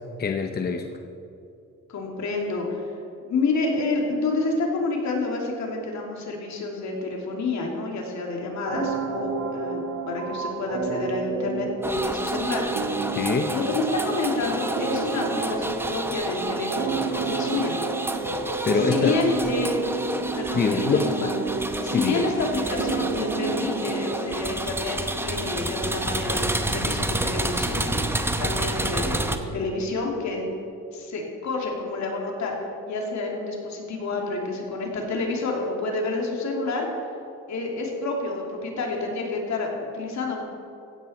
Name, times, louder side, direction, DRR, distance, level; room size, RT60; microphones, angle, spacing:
voice 1, 0.2-0.9 13.1-13.5 18.7-19.1 20.5-21.1 21.9-22.2, left 5 dB, 30° left, 5 dB, 0.7 m, -24 dB
voice 2, 1.9-2.9 3.3-12.7 13.5-17.8 18.7-19.7 20.3-21.3 21.8-30.4 30.9-32.5 32.9-36.9 37.5-40.4, left 3 dB, 65° left, 0 dB, 2.7 m, -29 dB
sound 1, 8.7-24.7, right 4 dB, 75° right, 1.5 m, -30 dB
sound 2, 11.8-29.4, right 1 dB, 10° right, 0.9 m, -30 dB
15.5 x 9.6 x 4.3 m, 2.8 s
cardioid pair, 90°, 30 cm